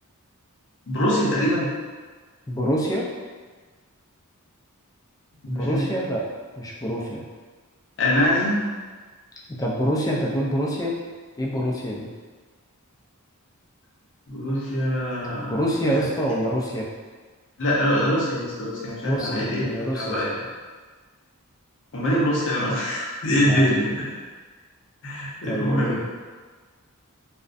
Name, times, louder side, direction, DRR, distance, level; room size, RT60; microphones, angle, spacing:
voice 1, 0.9-1.7 5.4-5.8 8.0-8.6 14.3-15.6 17.6-19.7 19.9-20.3 21.9-24.1 25.0-26.0, equal, 55° left, -6 dB, 0.7 m, -23 dB
voice 2, 2.5-3.0 5.5-6.2 6.6-7.2 9.6-10.9 11.4-12.1 15.4-16.9 19.0-20.2 23.5-23.7 25.5-26.0, equal, 15° left, -3 dB, 0.3 m, -26 dB
2.4 x 2.1 x 2.5 m, 1.4 s
head